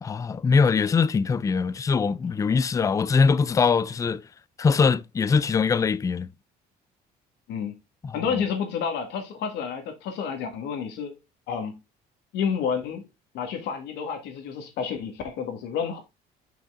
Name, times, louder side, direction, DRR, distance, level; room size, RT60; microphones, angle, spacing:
voice 1, 0.0-4.2 4.6-6.3 8.0-8.5, left 5 dB, 20° left, 0.3 m, -22 dB
voice 2, 8.1-11.2 11.5-11.8 12.3-13.1 13.3-16.0, left 6 dB, 85° left, 1.8 m, -30 dB
6.0 x 5.4 x 3.6 m
cardioid pair, 110°, 17 cm